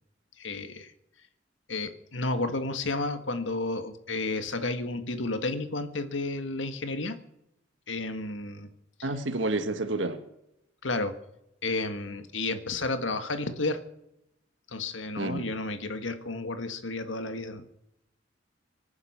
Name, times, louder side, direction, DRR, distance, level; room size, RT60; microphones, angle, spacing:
voice 1, 0.4-0.9 1.7-7.2 7.9-8.7 9.0-9.1 10.8-11.1 11.6-13.8 14.7-17.6, left 2 dB, 85° left, 9 dB, 1.6 m, -32 dB
voice 2, 9.0-10.2 15.2-15.5, right 2 dB, 80° right, 7 dB, 1.5 m, -29 dB
24.5 x 9.5 x 5.8 m, 0.82 s
head